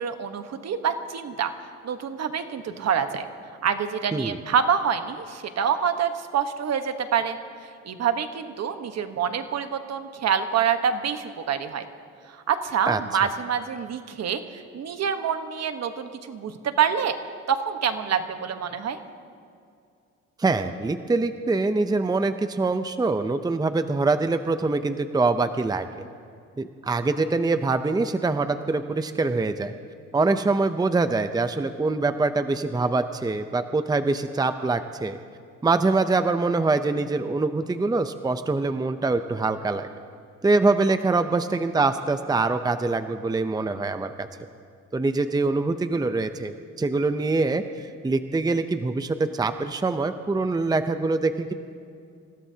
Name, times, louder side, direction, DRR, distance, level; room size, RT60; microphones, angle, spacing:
voice 1, 0.0-1.5 1.8-3.2 3.6-7.4 7.8-11.9 12.3-17.2 17.5-19.0, right 7 dB, 60° right, 8 dB, 1.2 m, -26 dB
voice 2, 12.9-13.3 20.4-26.0 26.6-29.7 30.1-35.2 35.6-39.9 40.4-44.3 44.9-51.5, right 3 dB, 15° right, 9 dB, 0.6 m, -24 dB
27.5 x 16.5 x 2.8 m, 2.3 s
cardioid pair, 90°, 30 cm